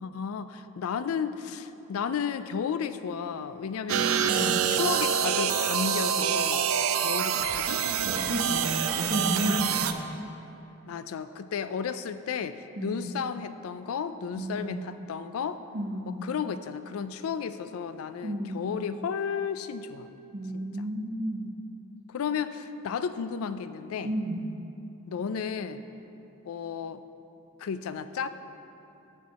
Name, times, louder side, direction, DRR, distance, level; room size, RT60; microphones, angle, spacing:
voice 1, 0.0-6.7 7.0-7.8 10.9-15.6 16.1-20.1 20.5-20.6 22.1-24.2 25.1-25.8 26.4-27.0 27.6-28.3, left 6 dB, 90° left, 12 dB, 0.4 m, -33 dB
sound 1, 3.9-9.9, right 8 dB, 80° right, 0.4 m, -26 dB
voice 2, 4.3-4.6 8.1-10.0 12.8-13.0 14.4-14.7 15.7-16.2 18.2-18.7 20.3-21.5 24.0-24.4, right 1 dB, 45° right, -2 dB, 0.7 m, -32 dB
12.0 x 4.5 x 4.1 m, 2.9 s
head